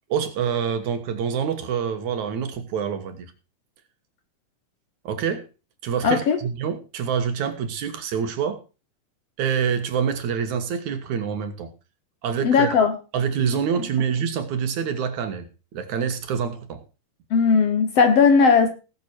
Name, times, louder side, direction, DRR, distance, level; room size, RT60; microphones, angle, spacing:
voice 1, 0.1-3.3 5.0-5.5 5.8-8.6 9.4-11.7 12.2-12.7 13.1-15.5 15.7-16.8, right 7 dB, 65° right, 2.7 m, -26 dB
voice 2, 6.0-6.4 12.4-13.0 17.3-18.7, left 5 dB, 60° left, 1.8 m, -17 dB
18.5 x 7.3 x 4.4 m
omnidirectional pair, 3.8 m